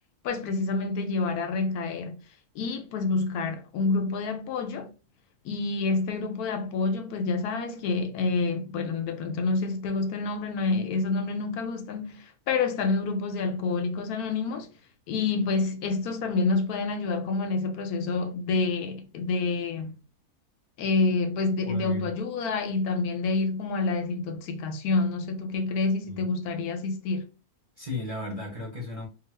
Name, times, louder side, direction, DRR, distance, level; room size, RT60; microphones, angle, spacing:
voice 1, 0.2-2.2 2.5-4.9 5.4-14.7 15.1-20.0 20.8-27.3, left 3 dB, 80° left, 1.1 m, -28 dB
voice 2, 21.7-22.1 26.0-26.2 27.8-29.1, left 2 dB, 35° right, 0.6 m, -35 dB
2.5 x 2.4 x 3.1 m
omnidirectional pair, 1.6 m